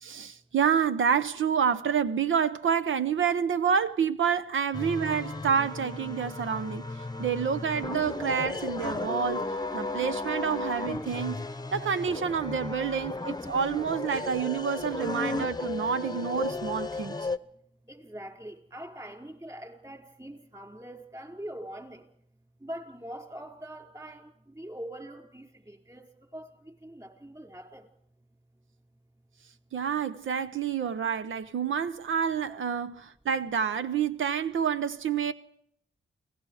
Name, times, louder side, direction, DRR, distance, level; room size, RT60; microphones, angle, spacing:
voice 1, 0.0-6.9 7.2-9.5 9.7-11.4 11.7-17.2 29.7-35.3, right 7 dB, 75° right, 0.8 m, -28 dB
sound 1, 4.7-17.4, left 2 dB, 20° left, 0.9 m, -34 dB
voice 2, 17.9-22.0 22.6-26.1 26.3-27.9 32.5-32.6, right 1 dB, 15° right, 5.1 m, -43 dB
29.0 x 18.5 x 4.9 m
cardioid pair, 45°, 21 cm